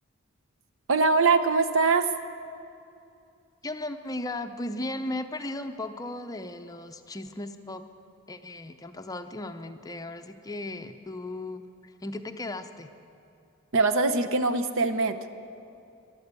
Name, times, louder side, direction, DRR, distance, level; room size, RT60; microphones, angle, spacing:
voice 1, 0.9-2.1 13.7-15.2, right 4 dB, 65° right, 10 dB, 0.7 m, -22 dB
voice 2, 3.6-7.9 8.3-13.0, left 2 dB, 15° left, 8 dB, 0.5 m, -36 dB
13.5 x 11.5 x 8.2 m, 2.6 s
head